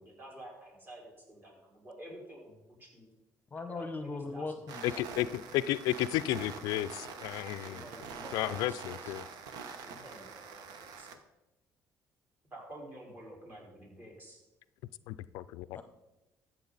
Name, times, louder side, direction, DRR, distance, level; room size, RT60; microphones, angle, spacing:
voice 1, 0.0-3.1 3.7-4.6 4.9-5.0 7.6-9.1 9.8-11.1 12.5-14.4, right 1 dB, 30° right, -2 dB, 4.5 m, -50 dB
voice 2, 3.5-5.0 15.7-15.8, left 3 dB, 25° left, 9 dB, 0.9 m, -39 dB
sound 1, 4.7-11.2, right 6 dB, 85° right, 1.0 m, -45 dB
voice 3, 5.0-7.9 8.3-9.2 15.1-15.8, left 14 dB, 85° left, 16 dB, 0.3 m, -33 dB
13.5 x 7.3 x 4.1 m, 0.99 s
cardioid pair, 95°, 6 cm